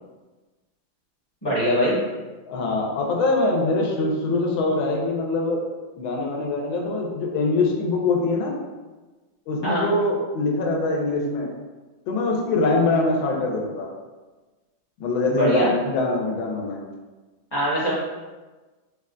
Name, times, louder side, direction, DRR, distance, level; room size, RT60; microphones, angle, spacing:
voice 1, 1.4-1.9 9.6-9.9 15.3-15.7 17.5-17.9, equal, 25° left, -10 dB, 0.6 m, -22 dB
voice 2, 2.5-5.6 6.0-8.6 9.5-11.5 12.1-13.9 15.0-16.8, left 2 dB, 90° left, -1 dB, 1.4 m, -23 dB
3.7 x 2.2 x 2.3 m, 1.2 s
omnidirectional pair, 2.1 m